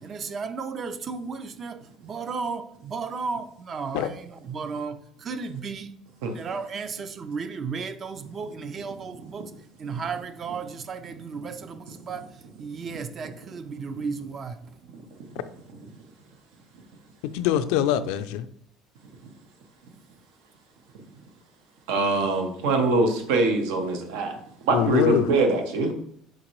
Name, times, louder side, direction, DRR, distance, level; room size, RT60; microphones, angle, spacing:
voice 1, 0.0-5.9 6.3-9.5 9.8-14.6, right 5 dB, 35° right, 0.4 m, -34 dB
voice 2, 17.2-18.5 24.7-25.3, left 10 dB, 80° left, 0.3 m, -24 dB
voice 3, 21.9-25.9, right 3 dB, 85° right, 0.8 m, -24 dB
4.4 x 3.8 x 3.1 m
cardioid pair, 125°, 0 cm